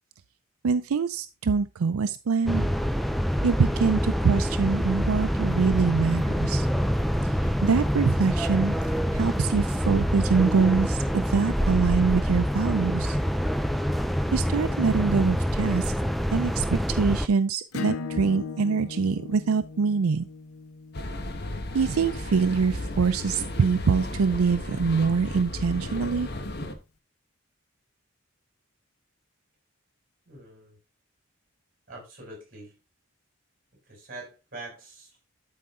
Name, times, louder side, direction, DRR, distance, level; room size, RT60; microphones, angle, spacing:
voice 1, 0.6-2.7 3.4-6.7 7.4-8.7 9.1-13.2 14.3-15.9 16.3-20.3 21.7-26.3, right 5 dB, 85° right, 0.5 m, -24 dB
sound 1, 2.5-17.3, equal, ahead, 0.3 m, -26 dB
Acoustic guitar / Strum, 17.7-23.0, left 4 dB, 90° left, 0.7 m, -38 dB
sound 2, 20.9-26.7, left 1 dB, 50° left, 1.2 m, -34 dB
voice 2, 30.3-30.8 31.9-32.7 33.9-35.3, right 2 dB, 40° right, 5.8 m, -44 dB
11.5 x 4.7 x 3.6 m
head